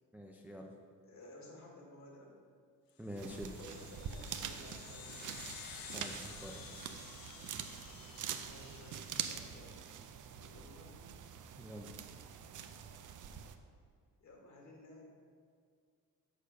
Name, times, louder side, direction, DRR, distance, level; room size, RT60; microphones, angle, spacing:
voice 1, 0.1-0.7 3.0-3.6 5.9-6.6 11.6-11.9, equal, 5° right, 1 dB, 0.5 m, -46 dB
voice 2, 1.0-2.4 3.4-5.4 7.6-9.8 10.4-10.9 14.2-15.1, left 1 dB, 50° left, -1 dB, 1.8 m, -56 dB
sound 1, 3.1-9.9, left 7 dB, 70° left, 0.7 m, -52 dB
sound 2, 3.2-13.6, right 8 dB, 60° right, 0.6 m, -45 dB
6.7 x 4.9 x 6.6 m, 2.1 s
cardioid pair, 125°, 36 cm